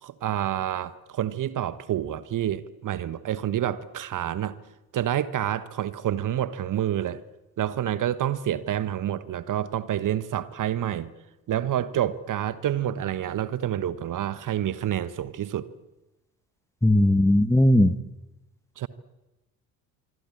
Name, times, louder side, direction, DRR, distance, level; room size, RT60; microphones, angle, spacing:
voice 1, 0.0-4.6 4.9-7.2 7.6-11.1 11.5-15.7 18.8-18.9, right 11 dB, 40° right, 15 dB, 1.2 m, -28 dB
voice 2, 16.8-17.9, left 1 dB, 5° left, 12 dB, 1.4 m, -18 dB
25.5 x 24.0 x 8.7 m, 1.0 s
figure-of-eight pair, 55°, 49 cm